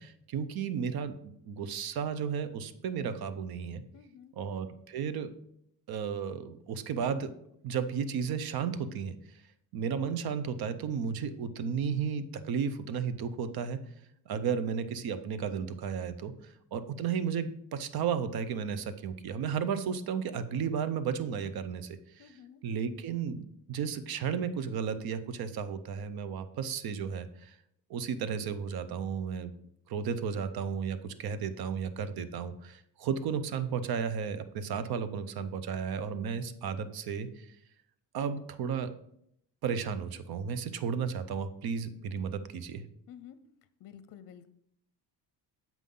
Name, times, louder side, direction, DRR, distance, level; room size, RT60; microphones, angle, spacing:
voice 1, 0.0-3.8 4.4-5.3 5.9-7.3 7.6-9.1 9.7-13.8 14.3-22.2 22.6-27.6 27.9-29.5 29.9-37.5 38.1-38.9 39.6-42.8, right 7 dB, 65° right, 12 dB, 0.7 m, -33 dB
voice 2, 3.9-4.3 22.2-22.6 43.1-43.4 43.8-44.5, left 9 dB, 55° left, 12 dB, 0.6 m, -51 dB
7.4 x 5.5 x 3.8 m, 0.74 s
cardioid pair, 110°, 39 cm